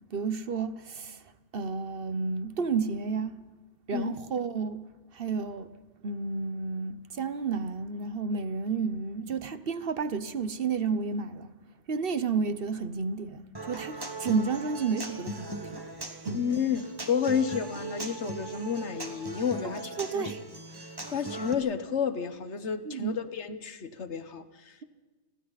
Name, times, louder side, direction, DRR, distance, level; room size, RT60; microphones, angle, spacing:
voice 1, 0.1-3.4 3.9-5.7 6.0-11.5 11.9-15.8 16.2-16.5 20.0-20.4 22.8-23.2, right 5 dB, 55° right, 1.1 m, -31 dB
Human voice / Acoustic guitar, 13.5-21.5, right 2 dB, 20° right, 1.5 m, -39 dB
voice 2, 16.3-20.3 21.1-24.7, left 7 dB, 80° left, 1.5 m, -31 dB
29.5 x 22.5 x 4.1 m
omnidirectional pair, 1.2 m